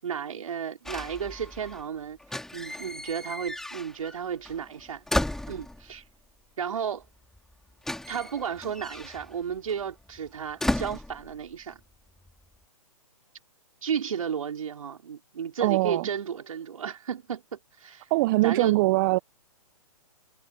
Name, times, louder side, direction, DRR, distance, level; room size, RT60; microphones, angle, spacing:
voice 1, 0.0-2.2 2.5-5.1 5.5-6.0 6.6-7.1 8.1-11.8 13.8-18.1 18.4-18.7, right 7 dB, 65° right, 5.5 m, -33 dB
sound 1, 0.9-1.9 2.2-4.2 4.5-6.1 7.0-7.1 7.3-11.8 12.1-12.6, left 1 dB, ahead, 3.7 m, -34 dB
voice 2, 15.6-16.1 18.1-19.2, right 20 dB, 35° right, 1.2 m, -22 dB
figure-of-eight pair, 125°, 19 cm